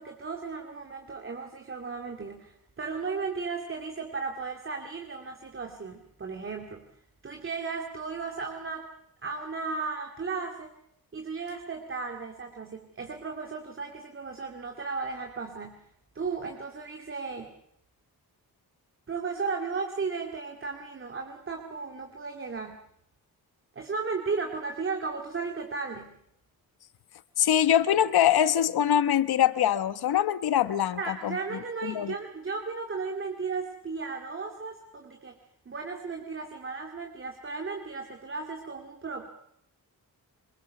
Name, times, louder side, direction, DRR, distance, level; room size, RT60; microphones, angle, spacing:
voice 1, 0.0-6.9 7.2-8.9 9.2-10.7 11.1-15.9 16.1-17.5 19.1-22.8 23.8-26.2 31.0-35.4 35.7-39.3, right 4 dB, 35° right, 2.6 m, -35 dB
voice 2, 27.4-31.4 31.8-32.2, left 10 dB, 85° left, 1.2 m, -23 dB
25.5 x 22.0 x 6.7 m
wide cardioid pair, 140°, 37 cm